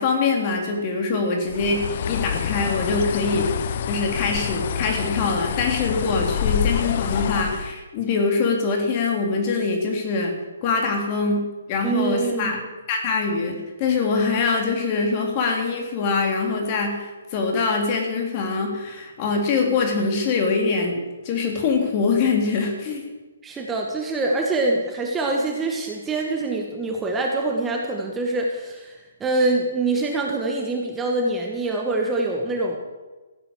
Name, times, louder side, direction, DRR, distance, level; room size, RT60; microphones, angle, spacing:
voice 1, 0.0-10.3 10.6-12.6 12.9-21.0 21.2-23.0, left 4 dB, 35° left, 2 dB, 3.5 m, -23 dB
Bird, 1.5-7.7, left 8 dB, 50° left, 0.8 m, -27 dB
voice 2, 11.8-12.6 23.4-32.8, right 2 dB, 10° right, 0 dB, 1.8 m, -25 dB
15.0 x 9.0 x 6.6 m, 1.2 s
hypercardioid pair, 140°, 0 cm